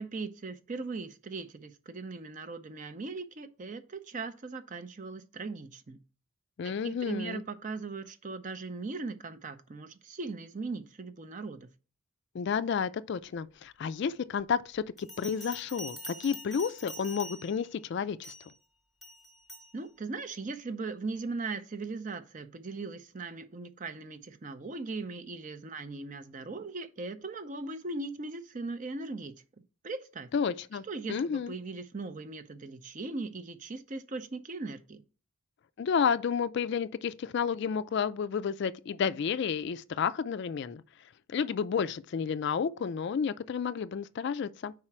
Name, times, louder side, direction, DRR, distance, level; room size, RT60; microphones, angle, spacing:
voice 1, 0.0-6.0 6.6-11.7 19.7-29.4 29.8-30.3 30.8-35.0, right 3 dB, 35° right, 0.5 m, -39 dB
voice 2, 6.6-7.4 12.3-18.3 30.3-30.8 31.1-31.5 35.8-40.8 41.3-44.7, left 6 dB, 50° left, 0.3 m, -31 dB
Bell, 15.0-17.7 18.2-18.5 19.0-19.7, left 1 dB, ahead, 0.9 m, -45 dB
4.8 x 4.4 x 5.9 m
head